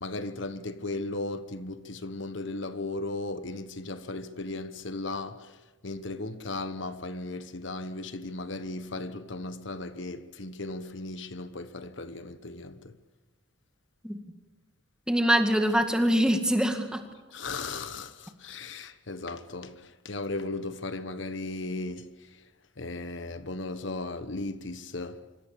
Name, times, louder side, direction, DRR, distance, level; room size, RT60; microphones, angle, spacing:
voice 1, 0.0-5.5 5.8-12.9 17.3-22.1 22.8-25.2, left 2 dB, 65° left, 1.2 m, -36 dB
voice 2, 15.1-17.0, equal, 5° right, 2.1 m, -24 dB
25.5 x 25.5 x 7.0 m
head